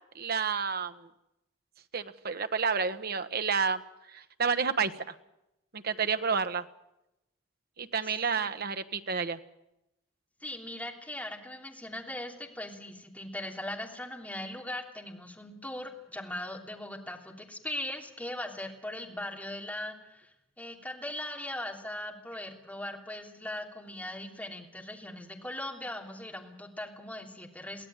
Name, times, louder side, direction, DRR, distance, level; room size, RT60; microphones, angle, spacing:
voice 1, 0.1-0.9 1.9-3.8 4.1-5.1 5.7-6.6 7.8-9.4, right 5 dB, 55° right, 9 dB, 1.2 m, -30 dB
voice 2, 10.4-27.9, left 1 dB, 10° left, 1 dB, 3.1 m, -39 dB
23.5 x 16.5 x 9.0 m, 0.89 s
head